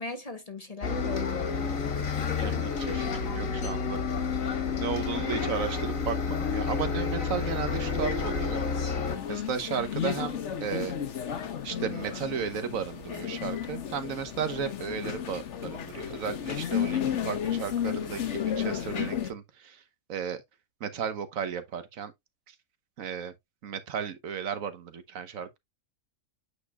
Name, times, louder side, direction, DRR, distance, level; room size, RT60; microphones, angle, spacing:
voice 1, 0.0-2.1, left 3 dB, 30° left, 1.0 m, -39 dB
Bus, 0.8-9.2, left 5 dB, 85° left, 1.9 m, -30 dB
voice 2, 2.4-4.0 4.8-8.6 9.3-11.0 11.6-19.8 20.1-20.4 20.8-22.1 22.5-22.6 23.0-23.3 23.6-25.6, right 7 dB, 85° right, 1.4 m, -34 dB
sound 1, 9.1-19.3, left 9 dB, 65° left, 1.2 m, -33 dB
8.4 x 5.3 x 2.3 m
omnidirectional pair, 1.4 m